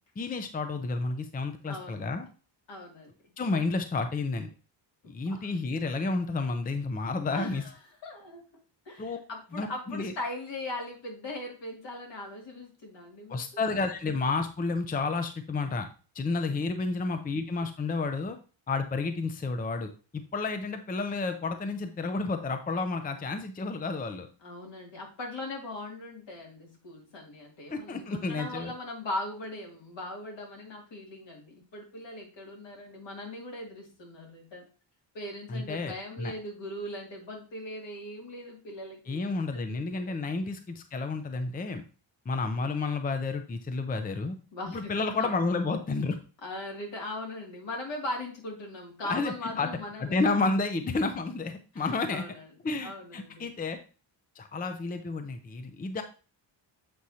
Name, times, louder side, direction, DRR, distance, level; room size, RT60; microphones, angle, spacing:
voice 1, 0.2-2.3 3.4-4.5 5.1-7.6 9.0-9.2 9.5-10.1 13.3-15.9 16.1-18.4 18.7-24.3 27.7-28.7 35.5-36.3 39.1-41.8 42.3-44.4 44.7-46.2 49.0-49.7 50.0-52.2 52.6-53.8 54.4-56.0, left 3 dB, 20° left, 8 dB, 0.5 m, -31 dB
voice 2, 1.6-2.1 2.7-3.1 5.0-5.5 7.3-7.7 8.0-8.4 8.9-13.4 16.5-16.6 24.4-34.7 35.1-40.2 44.5-45.3 46.4-50.4 51.7-52.5 52.8-53.5, left 1 dB, 65° left, 0 dB, 2.5 m, -40 dB
7.7 x 4.8 x 2.8 m, 0.36 s
cardioid pair, 125°, 47 cm